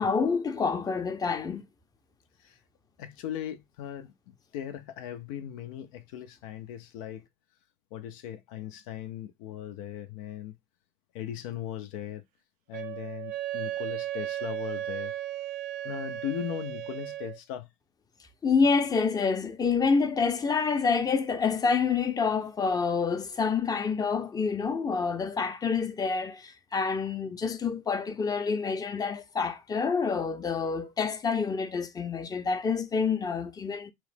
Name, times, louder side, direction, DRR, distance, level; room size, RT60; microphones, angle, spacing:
voice 1, 0.0-1.7 18.4-33.9, left 5 dB, 20° left, 0.6 m, -27 dB
voice 2, 3.0-7.3 7.9-10.5 11.1-12.2 12.7-15.1 15.8-17.7, left 10 dB, 75° left, 0.5 m, -38 dB
Wind instrument woodwind instrument, 12.7-17.4, right 13 dB, 55° right, 0.4 m, -35 dB
3.0 x 2.0 x 3.2 m
hypercardioid pair, 80°, 18 cm